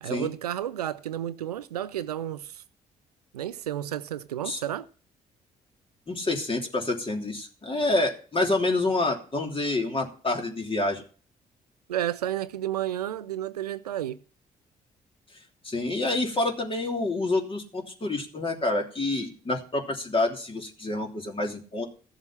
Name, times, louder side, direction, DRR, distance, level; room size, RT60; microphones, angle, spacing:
voice 1, 0.0-2.6 3.3-4.9 11.9-14.2, right 12 dB, 80° right, 0.4 m, -31 dB
voice 2, 6.1-11.0 15.6-21.9, left 2 dB, 25° left, 3.1 m, -28 dB
15.0 x 7.3 x 5.6 m
figure-of-eight pair, 40°, 20 cm